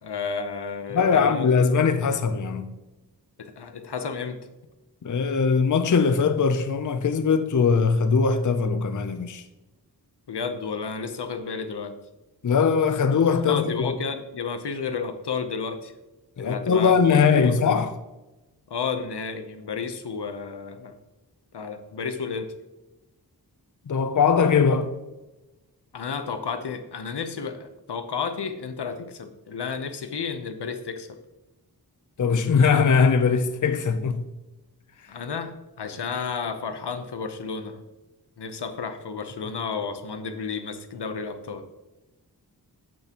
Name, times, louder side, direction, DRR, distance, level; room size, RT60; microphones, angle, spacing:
voice 1, 0.0-1.8 3.4-4.4 10.3-12.0 13.5-15.9 16.4-17.6 18.7-21.0 21.5-22.5 25.9-31.1 35.1-37.8 38.4-41.6, left 5 dB, 85° left, 0.8 m, -32 dB
voice 2, 0.9-2.7 5.0-9.4 12.4-13.9 16.4-18.0 23.9-24.9 32.2-34.2, left 5 dB, 50° left, 0.6 m, -21 dB
8.7 x 8.4 x 2.9 m
wide cardioid pair, 80°, 40 cm